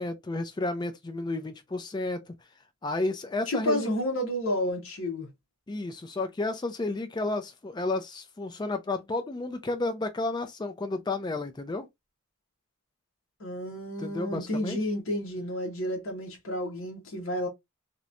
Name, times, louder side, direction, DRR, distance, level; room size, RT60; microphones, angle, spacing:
voice 1, 0.0-2.3 2.8-3.9 5.7-11.9 14.0-14.8, left 2 dB, 20° left, 0.3 m, -32 dB
voice 2, 3.5-5.3 13.4-17.5, left 1 dB, 65° left, 0.8 m, -31 dB
2.9 x 2.1 x 2.4 m
head